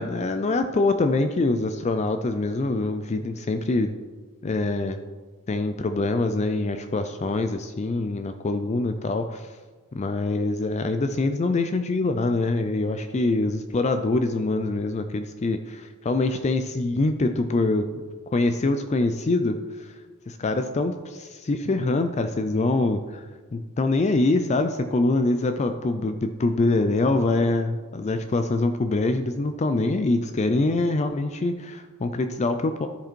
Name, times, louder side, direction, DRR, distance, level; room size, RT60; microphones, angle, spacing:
voice 1, 0.0-4.0 4.4-5.0 5.5-9.5 9.9-17.9 18.3-19.9 20.3-23.2 23.5-32.9, left 2 dB, 30° left, 8 dB, 0.4 m, -24 dB
13.0 x 5.0 x 4.5 m, 1.4 s
head